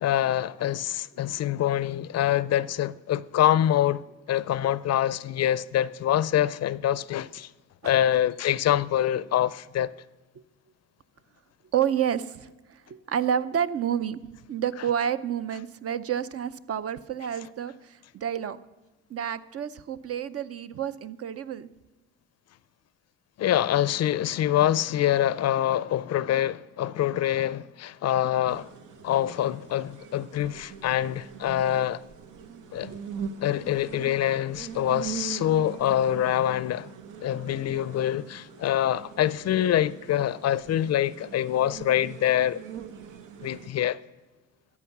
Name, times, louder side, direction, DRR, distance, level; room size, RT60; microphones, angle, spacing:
voice 1, 0.0-7.5 7.8-9.9 23.4-28.7 29.0-32.0 32.7-33.0 33.4-36.9 37.2-42.6 43.4-44.0, left 11 dB, 55° left, 0.5 m, -25 dB
voice 2, 11.7-14.2 14.5-18.6 19.1-21.7 32.9-33.0, right 9 dB, 50° right, 0.6 m, -29 dB
sound 1, 28.5-43.7, right 7 dB, 80° right, 1.1 m, -42 dB
13.5 x 8.5 x 5.9 m
cardioid pair, 90°, 30 cm